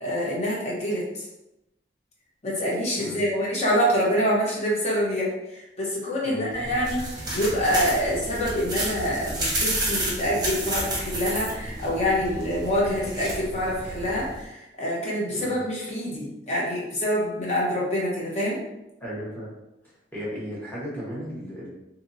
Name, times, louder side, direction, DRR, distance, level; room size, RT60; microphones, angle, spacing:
voice 1, 0.0-1.3 2.4-18.6, equal, 40° left, -5 dB, 0.9 m, -26 dB
voice 2, 6.2-6.8 15.3-15.6 19.0-19.6 20.1-21.7, equal, 10° left, -8 dB, 1.0 m, -35 dB
sound 1, 6.5-14.4, right 1 dB, 25° right, 0.8 m, -31 dB
2.7 x 2.7 x 2.6 m, 0.91 s
head